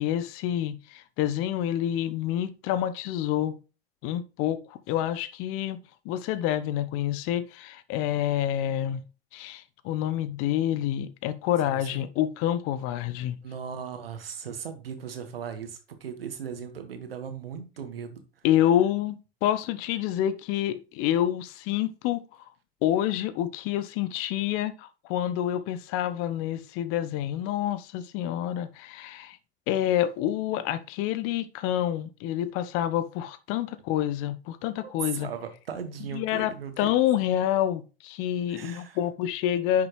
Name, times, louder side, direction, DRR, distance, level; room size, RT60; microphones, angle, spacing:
voice 1, 0.0-3.6 4.0-5.8 6.0-9.0 9.3-13.4 18.4-22.2 22.8-29.4 29.7-35.3 36.1-39.9, left 11 dB, 50° left, 0.9 m, -28 dB
voice 2, 11.6-12.0 13.4-18.2 34.8-36.9 38.5-39.0, right 7 dB, 80° right, 1.7 m, -38 dB
10.5 x 6.1 x 3.2 m
figure-of-eight pair, 75°, 29 cm